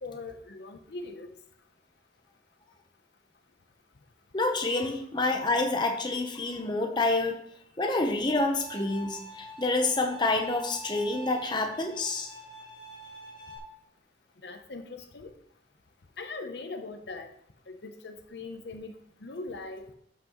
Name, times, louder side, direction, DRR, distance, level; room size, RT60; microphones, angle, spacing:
voice 1, 0.0-1.3 14.4-15.3 16.2-17.3 17.7-18.9 19.2-19.8, left 3 dB, 60° left, 6 dB, 0.8 m, -40 dB
voice 2, 4.3-7.4 7.8-12.3, left 2 dB, 25° left, 4 dB, 0.8 m, -28 dB
Bowed string instrument, 8.5-13.6, right 1 dB, 45° left, 2.3 m, -45 dB
12.0 x 6.0 x 3.0 m, 0.70 s
head